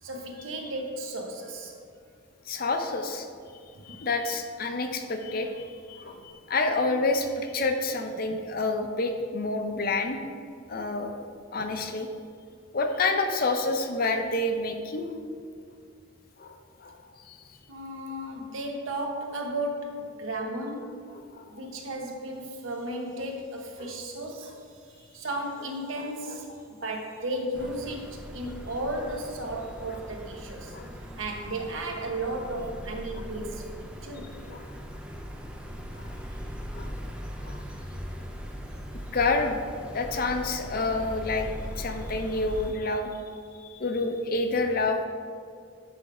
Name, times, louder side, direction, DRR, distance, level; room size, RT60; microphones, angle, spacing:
voice 1, 0.0-1.7 3.7-4.0 17.7-21.0 21.5-24.6 25.0-30.8 31.1-34.4, right 1 dB, 75° right, 2 dB, 1.0 m, -34 dB
voice 2, 2.5-3.3 3.8-10.2 10.7-11.1 11.5-12.1 12.7-15.1 16.4-17.4 21.3-21.4 23.8-23.9 26.0-26.4 30.7-30.9 34.5-34.7 36.0-36.1 36.7-37.0 37.4-37.6 39.1-39.6 39.9-43.1 43.6-45.1, left 3 dB, 45° left, 5 dB, 0.6 m, -28 dB
sound 1, 27.5-42.7, equal, 5° right, 0.5 m, -40 dB
10.0 x 3.4 x 4.9 m, 2.3 s
head